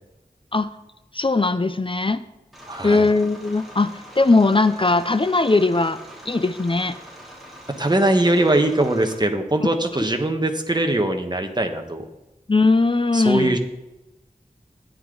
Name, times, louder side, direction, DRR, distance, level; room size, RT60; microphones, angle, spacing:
voice 1, 1.1-2.2 2.8-6.0 6.3-7.0 12.5-13.6, left 3 dB, 35° left, 12 dB, 0.5 m, -19 dB
sound 1, 2.5-9.1, equal, ahead, 3.8 m, -43 dB
voice 2, 2.7-3.1 7.8-12.0 13.1-13.6, right 1 dB, 30° right, 5 dB, 1.3 m, -21 dB
13.0 x 9.8 x 3.9 m, 0.99 s
wide cardioid pair, 60°, 15 cm